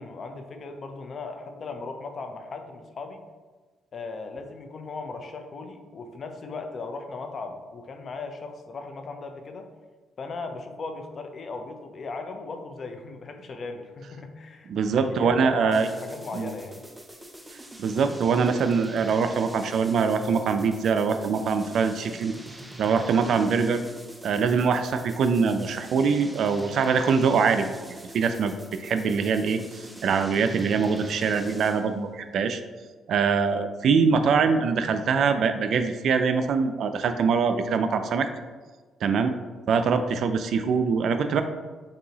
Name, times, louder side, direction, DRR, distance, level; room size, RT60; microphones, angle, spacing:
voice 1, 0.0-3.3 3.9-9.7 10.2-16.8, left 3 dB, 50° left, 6 dB, 0.6 m, -37 dB
voice 2, 14.7-15.9 16.3-16.5 17.8-22.3 22.8-23.8 24.2-28.5 28.8-32.6 33.1-38.3 39.0-39.3 39.7-41.4, right 5 dB, 65° right, 8 dB, 0.3 m, -23 dB
sound 1, 15.7-31.9, right 1 dB, 10° right, 0.5 m, -44 dB
6.6 x 2.7 x 2.8 m, 1.4 s
cardioid pair, 90°, 0 cm